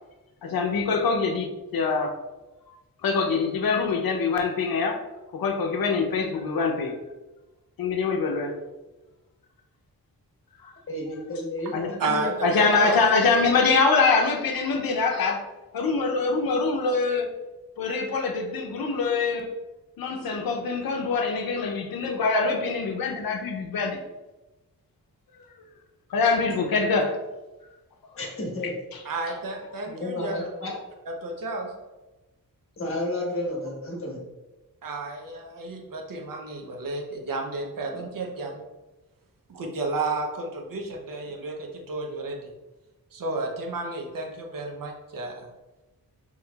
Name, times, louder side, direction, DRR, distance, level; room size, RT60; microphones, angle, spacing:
voice 1, 0.4-2.1 3.0-5.0 5.3-7.0 7.8-8.6 10.6-10.7 11.7-12.0 12.4-15.5 15.7-17.3 17.8-19.5 20.0-24.0 26.1-27.2, left 4 dB, 80° left, 3 dB, 0.6 m, -24 dB
voice 2, 10.9-12.7 28.2-28.7 29.9-30.7 32.8-34.2 37.9-38.0, left 1 dB, 40° left, -2 dB, 1.1 m, -32 dB
voice 3, 12.0-13.0 29.0-30.7 31.1-31.7 34.8-38.6 39.5-42.5 43.1-45.5, right 2 dB, 70° right, 2 dB, 0.8 m, -32 dB
5.5 x 3.0 x 2.3 m, 1.1 s
wide cardioid pair, 135°, 35 cm